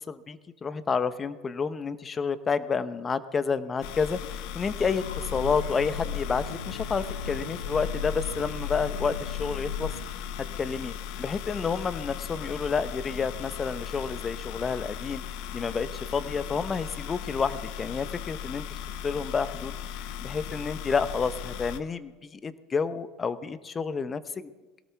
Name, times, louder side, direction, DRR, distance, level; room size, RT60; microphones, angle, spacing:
voice 1, 0.1-5.0 5.3-9.9 10.6-15.2 15.5-18.6 19.0-19.7 20.2-24.5, left 5 dB, 25° left, 13 dB, 0.9 m, -30 dB
sound 1, 3.8-21.8, left 9 dB, 60° left, 1.0 m, -38 dB
Train, 4.6-10.4, left 6 dB, 90° left, 1.3 m, -36 dB
22.5 x 18.0 x 3.5 m, 1.2 s
hypercardioid pair, 75°, 0 cm